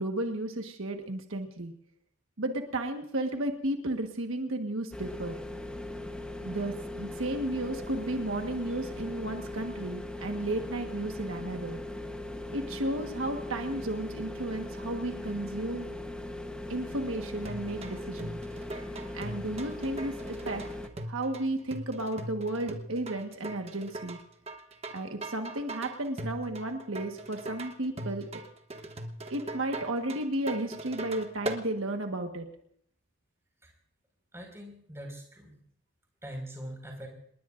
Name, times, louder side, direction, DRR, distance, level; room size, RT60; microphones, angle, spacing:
voice 1, 0.0-1.7 2.4-5.3 6.4-11.8 12.5-15.9 16.7-18.4 19.1-20.6 21.1-24.2 24.9-28.4 29.3-32.5, right 1 dB, 75° right, 4 dB, 1.4 m, -33 dB
sound 1, 4.9-20.9, left 1 dB, 5° left, 1.0 m, -39 dB
sound 2, 17.4-31.6, right 1 dB, 30° right, 1.2 m, -40 dB
voice 2, 34.3-35.6 36.2-37.1, right 1 dB, 15° right, 1 dB, 5.1 m, -42 dB
27.5 x 20.5 x 2.6 m, 0.65 s
head